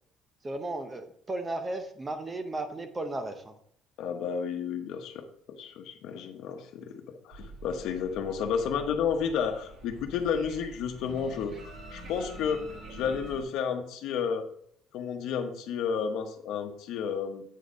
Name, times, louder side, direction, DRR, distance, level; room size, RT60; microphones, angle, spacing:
voice 1, 0.4-3.5, right 2 dB, 15° right, 8 dB, 0.6 m, -35 dB
voice 2, 4.0-5.2 5.6-11.6 11.9-14.5 14.9-17.4, left 7 dB, 65° left, 5 dB, 1.0 m, -31 dB
sound 1, 7.3-13.4, right 2 dB, 45° right, 1.2 m, -46 dB
8.3 x 4.2 x 4.9 m, 0.65 s
cardioid pair, 175°, 0 cm